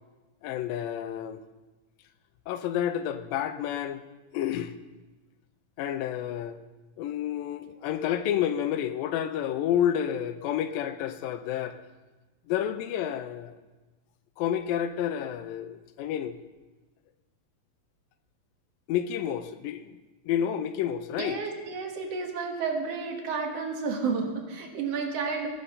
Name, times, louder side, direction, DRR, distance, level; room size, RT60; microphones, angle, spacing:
voice 1, 0.4-1.4 2.5-4.0 4.3-4.7 5.8-6.6 7.0-11.8 12.5-13.5 14.4-16.4 18.9-19.9 20.3-21.4, left 10 dB, 85° left, 11 dB, 2.3 m, -30 dB
voice 2, 21.2-25.5, right 5 dB, 50° right, 2 dB, 2.2 m, -31 dB
20.0 x 6.7 x 5.6 m, 1.2 s
omnidirectional pair, 4.1 m